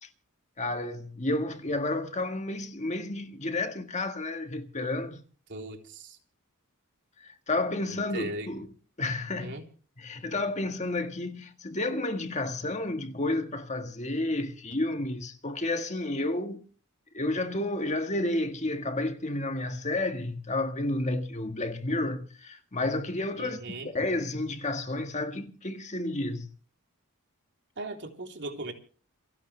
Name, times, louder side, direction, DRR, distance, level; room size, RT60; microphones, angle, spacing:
voice 1, 0.6-5.2 7.2-8.7 9.0-9.6 10.0-16.6 17.1-26.5, left 2 dB, 30° left, 1.7 m, -31 dB
voice 2, 5.5-6.2 8.1-8.5 9.4-9.6 23.4-23.9 27.8-28.7, right 2 dB, 55° right, 3.7 m, -38 dB
29.0 x 10.5 x 3.4 m
head